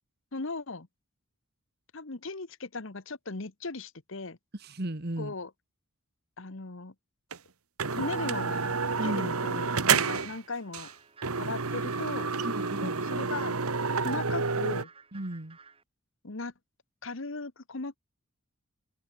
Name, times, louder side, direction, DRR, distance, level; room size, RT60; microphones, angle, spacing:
voice 1, 0.3-0.9 1.9-4.4 5.2-5.5 6.4-6.9 7.9-10.9 11.4-12.3 12.8-13.6 14.0-14.9 16.2-16.5 17.0-18.0, left 3 dB, 65° left, 1.2 m, -38 dB
voice 2, 4.6-5.3 9.0-9.3 12.4-13.0 15.1-15.6, right 1 dB, 45° right, 1.5 m, -35 dB
sound 1, 7.3-7.4 7.8-10.4 10.7-10.9 11.2-14.8, right 5 dB, 90° right, 1.5 m, -29 dB
sound 2, 10.0-15.8, right 5 dB, 25° right, 6.3 m, -55 dB
open air
head